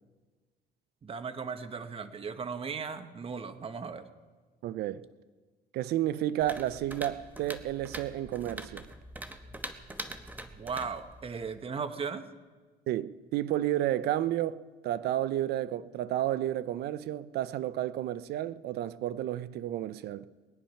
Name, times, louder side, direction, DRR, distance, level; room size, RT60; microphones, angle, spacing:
voice 1, 1.0-4.1 10.5-12.3, right 5 dB, 35° right, 1.1 m, -37 dB
voice 2, 4.6-5.0 5.7-8.9 12.9-20.3, right 13 dB, 75° right, 0.6 m, -31 dB
sound 1, 6.4-11.6, right 1 dB, 10° right, 1.1 m, -44 dB
21.0 x 10.0 x 5.8 m
cardioid pair, 110°, 17 cm